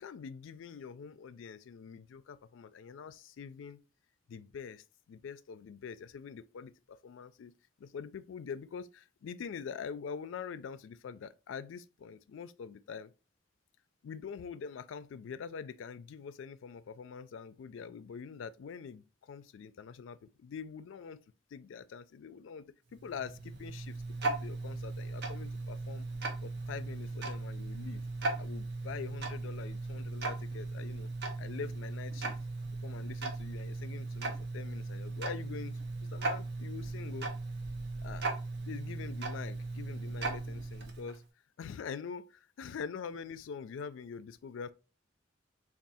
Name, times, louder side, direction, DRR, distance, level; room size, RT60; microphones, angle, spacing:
voice 1, 0.0-3.8 4.3-7.5 7.8-13.1 14.0-21.2 21.5-22.6 22.9-26.1 26.4-28.0 28.4-31.1 31.4-32.4 32.8-37.3 38.0-38.3 38.7-41.2 41.6-44.7, left 6 dB, 80° left, 0.3 m, -44 dB
Tick-tock, 22.9-41.2, right 3 dB, 60° right, 0.8 m, -38 dB
3.5 x 2.4 x 4.0 m
head